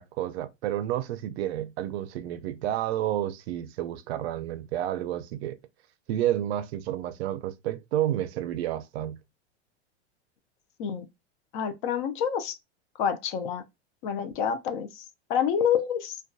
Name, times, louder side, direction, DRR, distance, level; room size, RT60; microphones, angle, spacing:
voice 1, 0.0-5.6 6.1-9.2, right 12 dB, 70° right, 0.5 m, -30 dB
voice 2, 11.5-12.6 13.0-13.6 14.0-16.2, left 8 dB, 50° left, 0.4 m, -28 dB
2.5 x 2.2 x 2.2 m
supercardioid pair, 145°, 34 cm